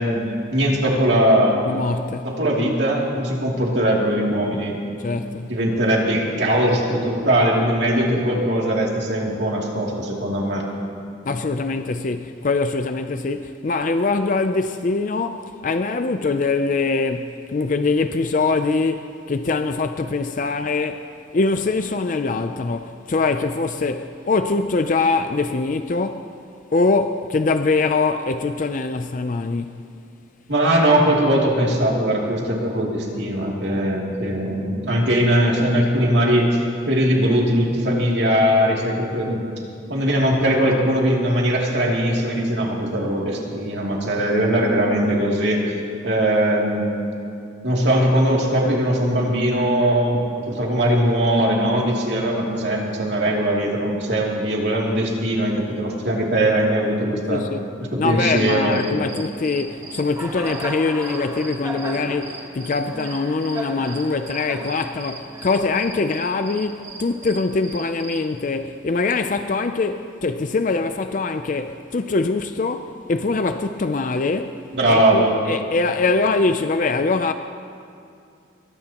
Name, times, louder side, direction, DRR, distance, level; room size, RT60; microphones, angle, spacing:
voice 1, 0.0-1.6 2.2-4.8 5.5-10.6 30.5-39.4 39.9-45.6 46.0-46.8 47.6-57.4 57.9-58.8 74.7-75.3, right 1 dB, 60° right, 2.7 m, -20 dB
voice 2, 1.6-2.3 5.0-5.6 11.3-21.1 21.3-26.3 26.7-29.8 57.3-57.7 58.0-77.3, left 3 dB, 40° left, 0.4 m, -23 dB
Cricket, 58.3-68.3, right 2 dB, 15° right, 1.2 m, -36 dB
22.0 x 20.5 x 3.0 m
head